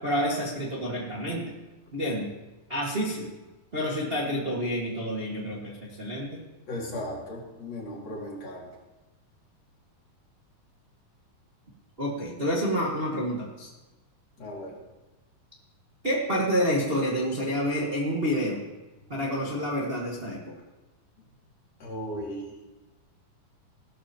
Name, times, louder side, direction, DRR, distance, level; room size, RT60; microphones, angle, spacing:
voice 1, 0.0-1.5 1.9-2.3 2.7-3.3 3.7-6.4 12.0-13.7 16.0-18.6 19.1-20.4, equal, 25° right, -4 dB, 1.3 m, -28 dB
voice 2, 6.7-8.7 14.4-14.8 21.8-22.6, left 1 dB, 50° left, -3 dB, 3.5 m, -36 dB
17.5 x 13.0 x 3.0 m, 1.1 s
omnidirectional pair, 4.0 m